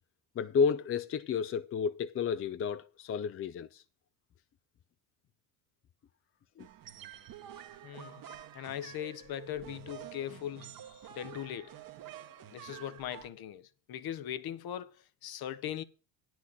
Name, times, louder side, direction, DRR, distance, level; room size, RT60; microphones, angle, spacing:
voice 1, 0.4-3.8 6.6-6.7, left 6 dB, 30° left, 0.6 m, -31 dB
sound 1, 6.6-13.3, right 10 dB, 45° right, 1.3 m, -49 dB
voice 2, 7.8-8.2 8.5-11.7 12.5-14.9 15.2-15.8, left 11 dB, 50° left, 1.1 m, -40 dB
9.8 x 6.2 x 8.1 m
supercardioid pair, 85°, 48 cm